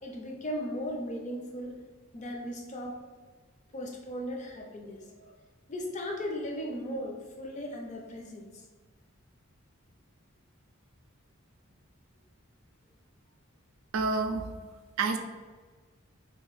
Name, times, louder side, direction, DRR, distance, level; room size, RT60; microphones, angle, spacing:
voice 1, 0.0-1.7 2.1-3.0 3.7-5.3 5.7-8.6, equal, 35° left, 2 dB, 0.4 m, -37 dB
voice 2, 13.9-14.5 15.0-15.2, right 4 dB, 75° right, 6 dB, 0.4 m, -28 dB
2.8 x 2.5 x 3.9 m, 1.4 s
head